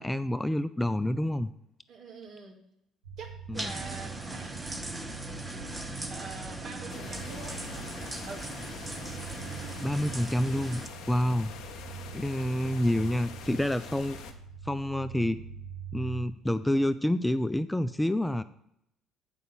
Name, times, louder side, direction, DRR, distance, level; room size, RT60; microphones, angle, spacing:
voice 1, 0.0-1.5 3.5-3.7 9.8-11.5 12.1-14.2 14.6-15.4 15.9-18.4, left 1 dB, 5° left, 13 dB, 0.4 m, -28 dB
voice 2, 1.9-2.6 3.2-5.3 6.1-8.5, right 4 dB, 60° right, 1 dB, 2.3 m, -46 dB
sound 1, 3.0-16.3, right 7 dB, 85° right, 0.8 m, -45 dB
sound 2, 3.5-10.9, right 2 dB, 15° right, 1.1 m, -39 dB
sound 3, 6.9-14.3, left 6 dB, 60° left, 1.0 m, -44 dB
8.4 x 5.2 x 7.1 m, 0.76 s
hypercardioid pair, 55°, 0 cm